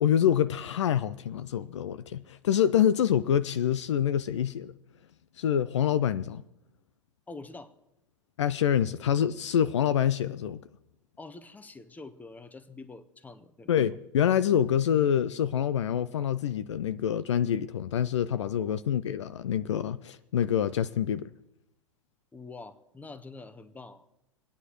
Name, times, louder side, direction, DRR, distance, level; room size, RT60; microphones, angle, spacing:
voice 1, 0.0-4.7 5.4-6.4 8.4-10.6 13.7-21.3, left 9 dB, 65° left, 0.5 m, -26 dB
voice 2, 7.3-7.7 11.2-13.7 18.6-18.8 22.3-24.0, left 3 dB, 10° left, 1.0 m, -46 dB
27.5 x 9.6 x 3.1 m
figure-of-eight pair, 95°, 16 cm